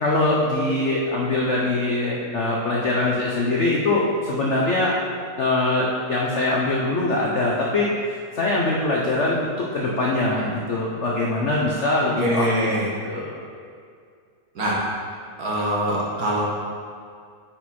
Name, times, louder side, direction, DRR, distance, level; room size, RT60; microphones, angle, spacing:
voice 1, 0.0-4.9 5.4-7.9 8.3-12.7 13.0-13.4, left 2 dB, 75° left, -3 dB, 0.6 m, -23 dB
voice 2, 12.2-12.9 14.5-14.8 15.4-16.4, equal, 50° right, -4 dB, 1.5 m, -23 dB
9.2 x 4.7 x 4.2 m, 2.2 s
omnidirectional pair, 2.4 m